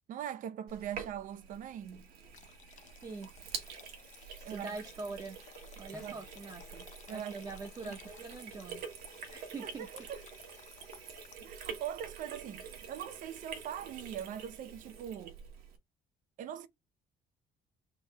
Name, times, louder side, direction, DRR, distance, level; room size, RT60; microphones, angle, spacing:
voice 1, 0.1-2.1 4.4-4.8 6.0-6.1 7.1-7.4 7.8-7.9 9.6-10.2 11.4-15.4 16.4-16.7, right 10 dB, 60° right, 0.6 m, -41 dB
Sink (filling or washing), 0.7-15.8, right 6 dB, 75° right, 1.4 m, -47 dB
sound 1, 2.3-11.6, left 10 dB, 50° left, 0.6 m, -58 dB
voice 2, 4.4-5.4 5.8-9.9, right 3 dB, 25° right, 0.9 m, -44 dB
sound 2, 5.9-6.5, equal, 5° left, 0.6 m, -55 dB
3.7 x 3.1 x 4.4 m
cardioid pair, 145°, 16 cm